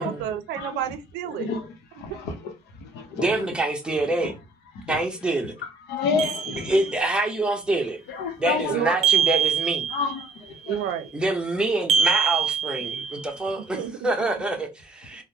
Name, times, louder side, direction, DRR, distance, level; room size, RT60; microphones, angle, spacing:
voice 1, 0.0-1.5 8.7-9.1 10.7-11.1 13.6-14.0, right 10 dB, 85° right, 0.5 m, -30 dB
voice 2, 1.3-1.7 1.9-2.5 2.8-3.3 4.7-5.0 5.6-6.9 8.1-8.8 9.9-10.8 12.9-13.0, left 5 dB, 75° left, 0.8 m, -30 dB
voice 3, 3.2-4.3 4.9-5.6 6.6-8.0 8.4-9.9 11.1-15.2, right 2 dB, 5° right, 0.7 m, -26 dB
sound 1, 6.2-7.2 9.0-10.3 11.9-13.4, right 7 dB, 40° right, 0.6 m, -24 dB
3.5 x 2.1 x 2.8 m
cardioid pair, 110°, 17 cm